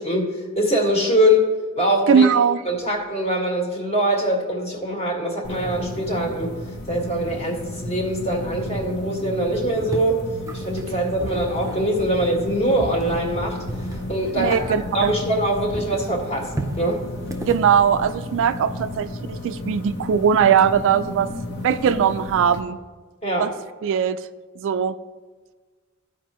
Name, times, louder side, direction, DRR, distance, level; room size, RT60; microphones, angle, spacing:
voice 1, 0.0-1.5 1.8-2.3 2.7-6.6 6.9-10.2 10.5-14.6 14.9-16.5 16.8-17.0 23.2-23.5, equal, 30° left, -1 dB, 1.6 m, -23 dB
voice 2, 2.1-2.6 14.4-15.1 17.5-21.3 21.6-22.8 23.4-23.5 23.8-24.2 24.6-24.9, right 7 dB, 60° right, 12 dB, 0.3 m, -19 dB
sound 1, 5.4-22.6, left 1 dB, 50° left, 1.0 m, -33 dB
sound 2, 9.8-15.5 15.7-18.6, right 2 dB, 15° right, 0.6 m, -35 dB
14.0 x 4.9 x 3.0 m, 1.4 s
head